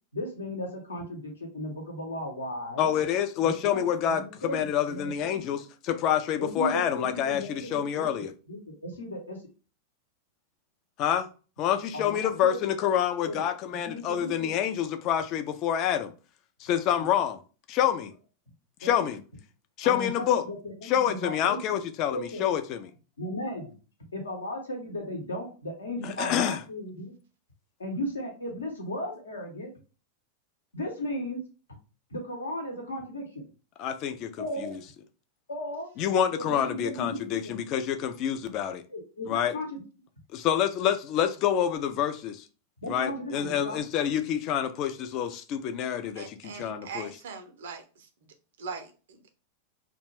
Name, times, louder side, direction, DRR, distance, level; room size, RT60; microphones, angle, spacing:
voice 1, 0.1-2.9 3.4-5.5 6.4-9.4 11.9-12.6 13.3-13.4 13.9-14.5 18.8-19.0 19.8-21.8 22.1-22.5 23.2-23.7 24.1-27.1 27.8-29.7 30.7-31.4 32.1-33.5 34.4-34.7 35.5-35.9 36.4-37.6 38.9-39.8 42.8-43.8, left 1 dB, 75° left, 0.9 m, -36 dB
voice 2, 2.8-8.3 11.0-11.3 11.6-16.1 16.6-17.4 17.7-18.1 18.8-19.2 19.8-20.4 20.8-22.9 26.0-26.6 33.8-34.8 36.0-38.8 39.3-39.5 40.3-42.4 42.9-47.1, left 9 dB, 40° left, 0.4 m, -27 dB
voice 3, 46.2-48.1 48.6-49.4, right 5 dB, 60° right, 0.5 m, -41 dB
2.3 x 2.1 x 3.2 m
figure-of-eight pair, 90°, 0 cm